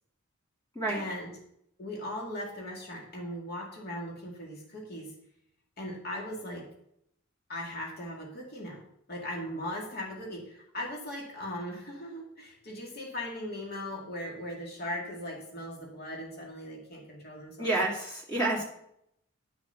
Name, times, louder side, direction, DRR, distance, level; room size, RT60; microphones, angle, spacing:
voice 1, 0.9-1.4 1.8-5.1 5.8-6.7 7.5-8.8 9.1-17.7, left 1 dB, 50° left, -1 dB, 2.2 m, -39 dB
voice 2, 17.6-18.6, right 2 dB, 20° left, -3 dB, 2.5 m, -29 dB
10.5 x 6.2 x 5.7 m, 0.75 s
head